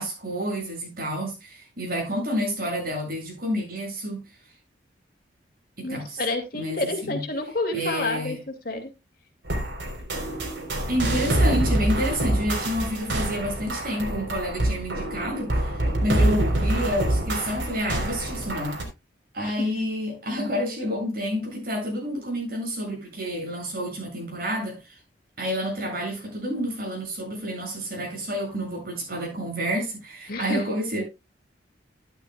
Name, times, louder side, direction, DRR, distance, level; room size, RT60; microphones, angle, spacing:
voice 1, 0.0-4.2 5.8-6.2 6.5-7.2 7.7-8.4 10.9-18.8 19.3-25.0 25.4-31.0, equal, 55° right, 7.9 m, -29 dB
voice 2, 5.8-8.9 19.4-19.7 30.3-30.6, left 2 dB, 55° left, 2.4 m, -29 dB
sound 1, 9.4-18.8, right 1 dB, 85° right, 3.7 m, -26 dB
13.0 x 11.5 x 2.3 m
head